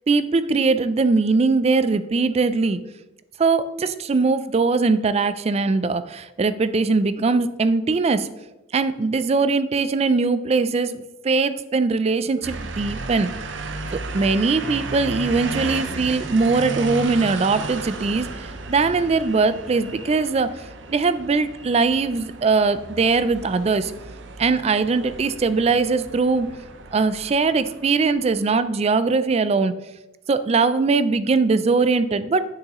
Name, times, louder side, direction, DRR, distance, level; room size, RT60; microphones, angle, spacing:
voice 1, 0.1-2.8 3.4-8.3 8.7-13.3 14.1-23.9 24.4-26.5 26.9-29.8 30.3-32.5, right 4 dB, 35° right, 13 dB, 0.3 m, -21 dB
sound 1, 12.4-28.6, right 3 dB, 70° right, 0.7 m, -34 dB
8.0 x 6.6 x 3.0 m, 0.99 s
head